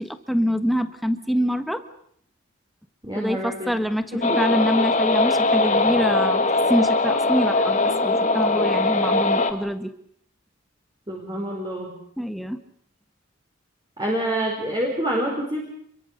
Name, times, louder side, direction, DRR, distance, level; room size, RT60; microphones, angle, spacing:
voice 1, 0.0-1.8 3.1-9.9 12.2-12.6, equal, ahead, 9 dB, 1.5 m, -25 dB
voice 2, 3.0-3.8 4.1-4.4 11.1-11.9 14.0-15.6, right 1 dB, 20° right, -1 dB, 4.9 m, -27 dB
sound 1, 4.2-9.5, left 2 dB, 35° left, 1.9 m, -21 dB
28.0 x 23.0 x 6.7 m, 0.67 s
head